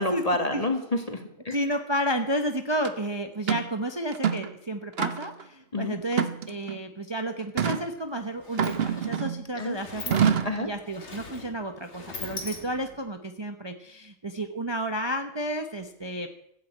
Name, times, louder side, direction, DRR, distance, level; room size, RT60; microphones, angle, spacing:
voice 1, 0.0-1.6 5.7-6.0 9.5-9.8 10.4-10.7, left 2 dB, 30° left, 5 dB, 2.1 m, -28 dB
voice 2, 1.5-10.2 10.6-16.3, right 1 dB, 20° right, 6 dB, 1.0 m, -31 dB
sound 1, 2.8-2.9 3.5-3.7 4.1-4.5 5.0-5.4 6.1-6.8 7.6-7.9 8.6-9.4 10.1-10.6, right 7 dB, 50° right, 1.1 m, -26 dB
Sliding door, 7.8-7.9 8.2-13.1, left 3 dB, 60° left, 2.4 m, -42 dB
15.5 x 9.5 x 8.7 m, 0.75 s
omnidirectional pair, 1.3 m